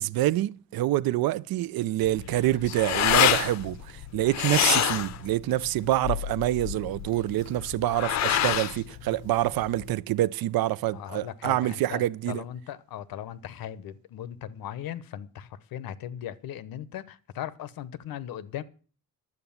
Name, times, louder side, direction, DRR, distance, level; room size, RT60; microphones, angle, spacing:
voice 1, 0.0-12.4, right 14 dB, 90° right, 0.6 m, -26 dB
sound 1, 2.0-9.9, left 11 dB, 50° left, 0.6 m, -27 dB
voice 2, 10.9-18.6, left 10 dB, 85° left, 0.9 m, -38 dB
11.0 x 8.0 x 7.1 m
cardioid pair, 175°, 35 cm